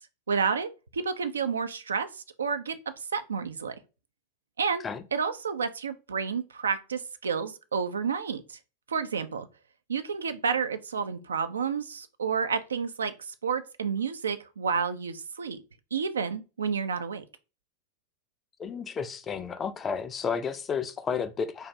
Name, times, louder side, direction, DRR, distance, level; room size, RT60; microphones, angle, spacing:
voice 1, 0.3-3.8 4.6-4.8 5.1-8.6 8.9-9.5 9.9-15.6 15.9-17.2, right 6 dB, 70° right, 0.3 m, -30 dB
voice 2, 18.6-21.7, left 6 dB, 20° left, 0.4 m, -32 dB
2.5 x 2.4 x 3.2 m
figure-of-eight pair, 90°, 0 cm